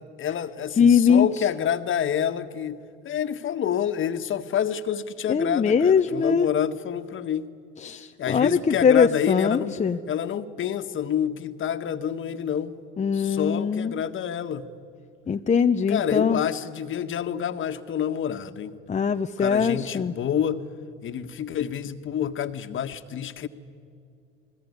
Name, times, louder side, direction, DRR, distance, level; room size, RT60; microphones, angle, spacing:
voice 1, 0.2-7.5 8.2-9.8 10.1-12.8 13.1-14.7 15.9-18.7 19.4-20.6 21.0-23.5, left 9 dB, 40° left, 9 dB, 1.7 m, -28 dB
voice 2, 0.8-1.3 5.3-6.5 7.8-10.0 13.0-13.9 15.3-16.4 18.9-20.1, left 6 dB, 25° left, 7 dB, 0.9 m, -21 dB
28.5 x 20.5 x 9.8 m, 2.4 s
hypercardioid pair, 80°, 30 cm